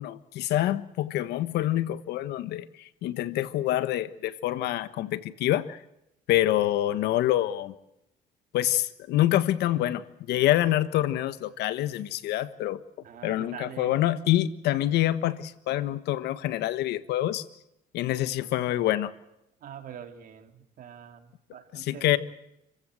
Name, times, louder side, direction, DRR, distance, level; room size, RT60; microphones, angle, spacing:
voice 1, 0.0-2.6 3.0-5.8 6.3-7.7 8.5-12.8 13.2-17.4 17.9-19.1 21.7-22.2, left 14 dB, 80° left, 14 dB, 1.4 m, -26 dB
voice 2, 13.0-13.9 19.6-22.2, right 9 dB, 55° right, 6 dB, 3.2 m, -44 dB
29.0 x 15.5 x 7.9 m, 0.82 s
cardioid pair, 110°, 17 cm